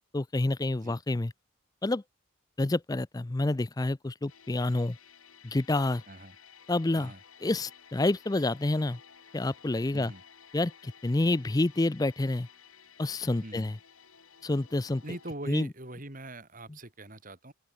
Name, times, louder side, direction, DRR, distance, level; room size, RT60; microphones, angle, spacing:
voice 1, 0.1-1.3 1.8-2.0 2.6-5.0 5.4-6.0 6.7-7.1 7.4-9.0 9.3-10.1 10.5-12.5 13.0-13.8 14.4-15.0 15.5-15.7, left 2 dB, 20° left, 0.4 m, -28 dB
sound 1, 4.3-15.4, left 7 dB, 90° left, 4.3 m, -55 dB
voice 2, 9.9-10.2 13.4-13.7 15.0-17.5, right 1 dB, 40° right, 3.6 m, -42 dB
open air
head